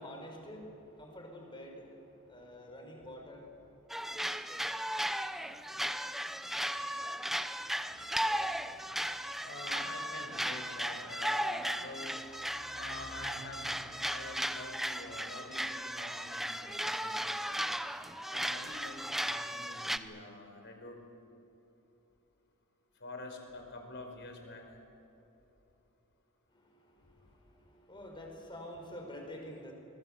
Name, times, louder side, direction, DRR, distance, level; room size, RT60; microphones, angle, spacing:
voice 1, 0.0-3.9 26.5-29.7, equal, 25° left, 2 dB, 5.6 m, -48 dB
sound 1, 3.9-20.0, equal, ahead, 0.8 m, -36 dB
sound 2, 7.6-18.5, equal, 60° right, 3.1 m, -59 dB
voice 2, 9.4-12.1 12.7-17.6 18.3-21.0 23.0-24.6, left 2 dB, 60° left, 4 dB, 5.0 m, -47 dB
26.5 x 22.0 x 8.0 m, 3.0 s
head